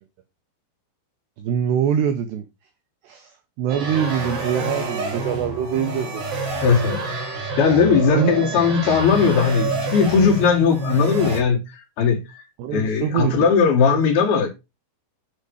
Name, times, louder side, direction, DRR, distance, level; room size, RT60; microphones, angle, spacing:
voice 1, 1.4-2.5 3.0-6.2 8.1-8.3 12.6-13.3, right 9 dB, 85° right, 2.4 m, -24 dB
sound 1, 3.7-11.4, right 1 dB, 55° right, 4.9 m, -27 dB
voice 2, 6.6-7.0 7.6-12.4 12.7-14.5, left 5 dB, 60° left, 3.4 m, -18 dB
9.5 x 5.4 x 4.8 m
omnidirectional pair, 5.9 m